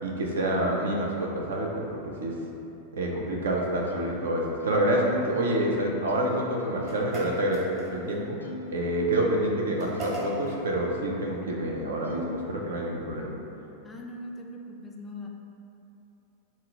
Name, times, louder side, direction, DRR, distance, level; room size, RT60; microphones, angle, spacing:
voice 1, 0.0-2.4 2.9-13.3, right 1 dB, 65° right, -1 dB, 0.5 m, -28 dB
Plucked string instrument, 3.9-8.8 9.1-10.8 11.3-11.4 12.0-13.2, left 2 dB, 80° left, 0.4 m, -43 dB
sound 1, 6.8-8.2 9.8-10.6, right 1 dB, 35° right, 1.1 m, -38 dB
voice 2, 13.8-15.3, left 1 dB, 15° left, 0 dB, 0.3 m, -40 dB
4.1 x 2.0 x 3.6 m, 2.8 s
figure-of-eight pair, 90°, 0 cm